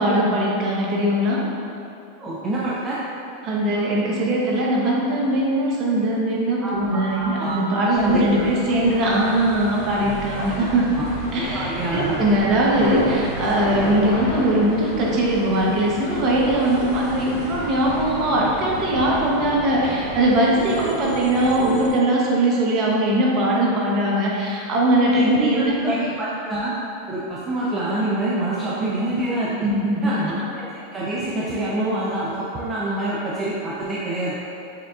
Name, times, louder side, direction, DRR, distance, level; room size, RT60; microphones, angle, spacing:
voice 1, 0.0-1.4 3.4-11.0 11.3-26.1 29.6-30.1, right 1 dB, 45° right, -3 dB, 0.8 m, -20 dB
voice 2, 2.2-3.0 6.6-7.6 8.0-8.5 10.6-10.7 11.0-11.1 11.3-12.2 25.1-26.7 27.1-29.5 30.0-34.4, right 1 dB, 25° right, -7 dB, 0.5 m, -26 dB
sound 1, 7.9-21.9, equal, 70° left, 1.2 m, -32 dB
6.5 x 2.3 x 2.4 m, 2.7 s
hypercardioid pair, 115°, 0 cm